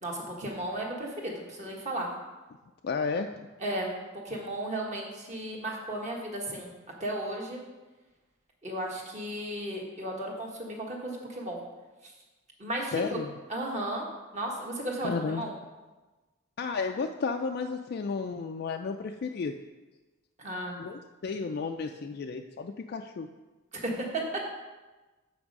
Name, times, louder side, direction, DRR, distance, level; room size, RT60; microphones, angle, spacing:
voice 1, 0.0-2.1 3.6-3.9 4.2-6.7 7.0-7.6 8.6-11.6 12.0-12.1 12.6-13.2 13.5-14.1 14.3-15.5 20.4-20.8 23.7-24.2, right 1 dB, 35° right, -1 dB, 1.4 m, -34 dB
voice 2, 2.8-3.3 12.9-13.3 15.0-15.4 16.6-19.5 20.8-23.3, left 4 dB, 50° left, 4 dB, 0.3 m, -32 dB
7.1 x 6.0 x 5.3 m, 1.2 s
head